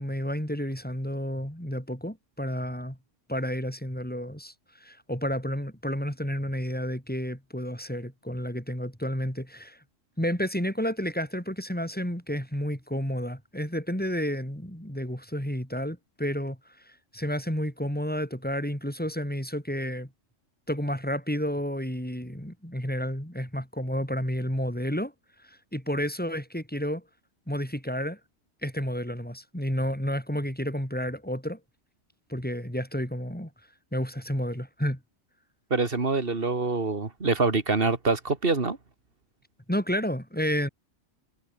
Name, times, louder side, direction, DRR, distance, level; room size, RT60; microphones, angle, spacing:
voice 1, 0.0-3.0 3.3-9.8 10.2-20.1 20.7-25.1 25.4-27.0 27.5-28.2 28.6-31.6 32.3-33.5 33.9-35.0 39.7-40.7, equal, 5° left, 5.7 m, -31 dB
voice 2, 35.7-38.8, right 3 dB, 50° right, 2.5 m, -25 dB
omnidirectional pair, 1.3 m